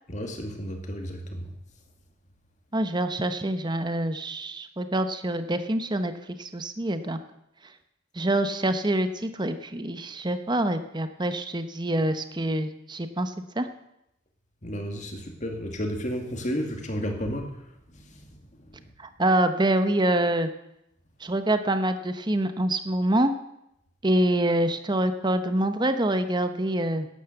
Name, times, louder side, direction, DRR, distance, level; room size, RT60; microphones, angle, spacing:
voice 1, 0.1-1.5 14.6-17.6 17.9-18.3 18.7-18.8, equal, 40° left, 4 dB, 2.2 m, -32 dB
voice 2, 2.7-6.1 6.4-7.2 8.1-13.7 19.0-20.5 21.2-23.3 24.0-27.1, right 1 dB, 20° right, 9 dB, 0.9 m, -26 dB
12.0 x 10.5 x 7.8 m, 0.82 s
head